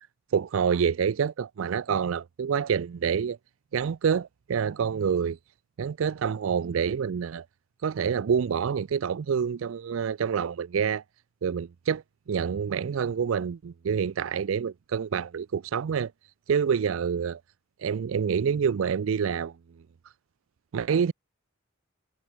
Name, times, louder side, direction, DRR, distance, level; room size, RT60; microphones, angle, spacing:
voice 1, 0.3-3.4 3.7-5.4 5.8-7.5 7.8-11.0 11.4-16.1 16.5-17.4 17.8-19.5 20.7-21.1, right 7 dB, 70° right, 0.4 m, -27 dB
head